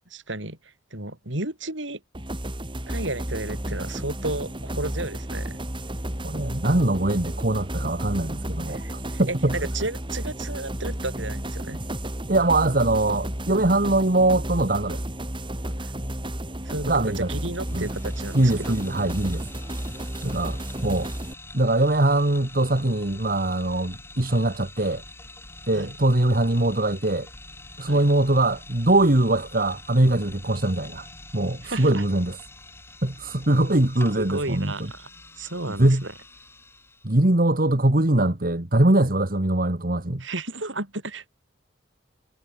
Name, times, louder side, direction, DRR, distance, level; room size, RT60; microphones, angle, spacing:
voice 1, 0.1-2.0 2.9-5.6 8.7-11.8 15.8-15.9 16.6-18.8 25.7-25.9 27.9-28.0 31.6-32.0 34.2-35.1 35.4-36.1 40.2-41.3, right 2 dB, 70° right, 7.2 m, -33 dB
sound 1, 2.1-21.3, right 1 dB, 25° right, 4.0 m, -32 dB
voice 2, 6.2-9.5 12.3-15.0 16.8-17.3 17.7-17.8 18.3-19.4 20.2-21.1 21.5-25.0 25.7-27.3 27.8-31.1 31.3-32.4 33.0-34.7 35.8-36.0 37.0-40.2, right 1 dB, 45° right, 1.8 m, -22 dB
sound 2, 17.4-37.1, left 2 dB, 10° left, 4.1 m, -45 dB
head